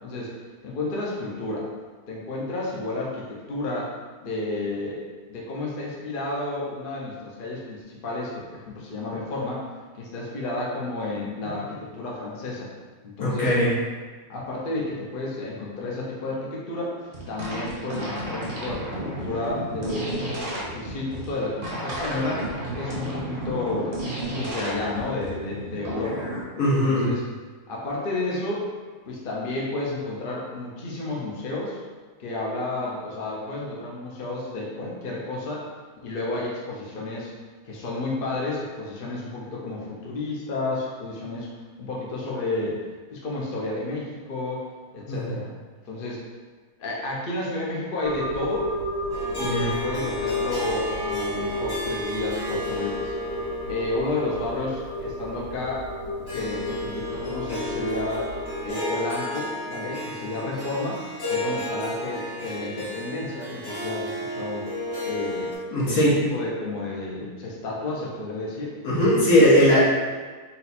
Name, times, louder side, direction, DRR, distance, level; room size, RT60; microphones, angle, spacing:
voice 1, 0.0-0.3 0.6-1.7 2.1-3.9 4.2-5.0 5.3-9.6 9.9-12.7 13.0-13.5 14.3-16.9 17.3-22.5 22.7-23.9 24.3-26.3 26.6-27.2 27.7-28.7 29.1-31.8 32.2-35.7 36.0-37.3 37.6-41.5 41.8-42.8 43.1-44.6 44.9-45.5 45.9-46.2 46.8-48.7 49.2-53.1 53.7-58.3 58.6-61.0 61.3-64.7 65.0-65.5 65.8-66.0 66.3-68.8, left 2 dB, 50° left, -4 dB, 0.8 m, -31 dB
voice 2, 13.2-13.7 26.6-27.1 45.1-45.3 49.4-49.7 65.7-66.2 68.8-69.8, equal, 75° left, -8 dB, 1.7 m, -19 dB
sound 1, 17.0-26.4, right 1 dB, 40° right, 1.0 m, -32 dB
sound 2, 48.0-58.7, left 1 dB, 85° right, 1.4 m, -32 dB
Harp, 49.1-65.5, left 1 dB, 20° left, 0.8 m, -34 dB
4.1 x 2.3 x 4.1 m, 1.4 s
omnidirectional pair, 1.5 m